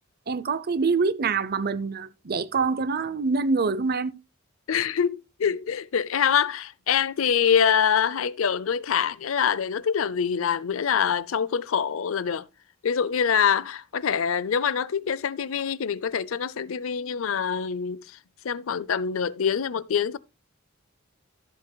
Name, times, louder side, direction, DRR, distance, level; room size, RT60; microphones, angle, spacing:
voice 1, 0.3-4.1, right 4 dB, 50° right, 0.6 m, -25 dB
voice 2, 4.7-12.5 12.8-18.0 18.4-20.2, left 7 dB, 75° left, 0.5 m, -25 dB
14.5 x 7.6 x 2.3 m
head